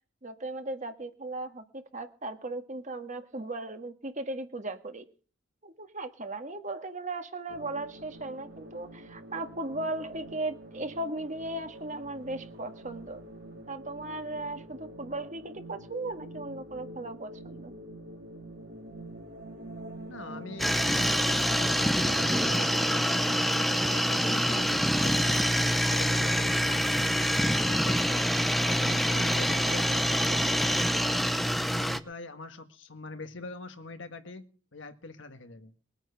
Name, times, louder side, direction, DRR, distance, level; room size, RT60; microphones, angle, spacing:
voice 1, 0.2-5.1 5.6-13.2 13.7-17.7, right 2 dB, 40° right, 7 dB, 1.7 m, -37 dB
sound 1, 7.5-23.4, right 1 dB, 55° right, 3.6 m, -45 dB
voice 2, 20.1-23.1 23.5-27.0 27.4-28.3 28.6-31.4 31.8-34.5 34.7-35.7, left 3 dB, 70° left, 8 dB, 1.6 m, -43 dB
sound 2, 20.6-32.0, equal, ahead, 0.7 m, -26 dB
21.5 x 8.9 x 5.8 m, 0.41 s
head